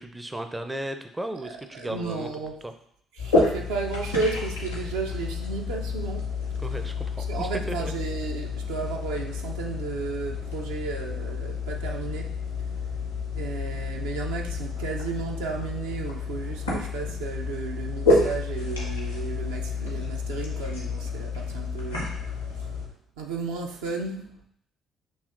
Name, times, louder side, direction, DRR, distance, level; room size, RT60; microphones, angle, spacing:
voice 1, 0.0-2.3 2.6-2.7 6.6-7.8, right 1 dB, 15° right, 7 dB, 0.4 m, -35 dB
voice 2, 1.7-2.6 3.1-6.3 7.3-12.3 13.3-22.8 23.2-24.3, right 5 dB, 70° right, 1 dB, 0.5 m, -33 dB
sound 1, 3.2-22.9, left 3 dB, 90° left, 0.8 m, -30 dB
6.1 x 2.8 x 2.5 m, 0.69 s
figure-of-eight pair, 45°, 0 cm